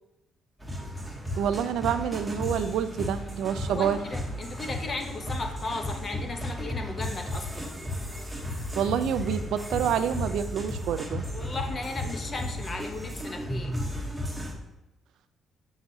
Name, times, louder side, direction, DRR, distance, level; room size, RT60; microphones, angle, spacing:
sound 1, 0.6-14.5, left 1 dB, 5° right, 1.0 m, -34 dB
voice 1, 1.4-4.0 8.8-11.2, right 8 dB, 75° right, 11 dB, 0.4 m, -27 dB
voice 2, 3.7-7.8 11.3-13.8, left 3 dB, 35° left, 4 dB, 0.9 m, -36 dB
6.5 x 5.9 x 2.7 m, 0.94 s
cardioid pair, 125°, 0 cm